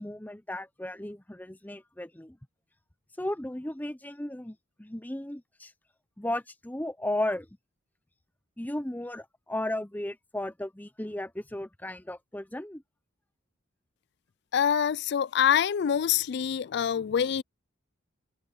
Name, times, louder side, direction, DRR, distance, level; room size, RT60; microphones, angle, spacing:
voice 1, 0.0-2.4 3.2-5.7 6.2-7.5 8.6-12.8, left 1 dB, 10° left, 0.7 m, -35 dB
voice 2, 14.5-17.4, left 8 dB, 55° left, 0.3 m, -25 dB
head